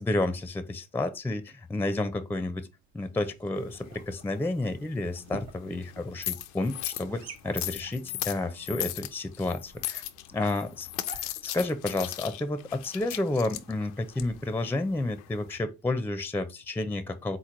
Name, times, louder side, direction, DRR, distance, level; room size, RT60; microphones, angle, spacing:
voice 1, 0.0-2.6 2.9-10.0 10.3-17.4, left 2 dB, 5° left, 0.5 m, -31 dB
sound 1, 2.8-15.2, right 6 dB, 80° right, 1.2 m, -52 dB
sound 2, 3.5-15.6, left 14 dB, 80° left, 0.6 m, -39 dB
3.9 x 3.1 x 3.8 m
hypercardioid pair, 75°, 41 cm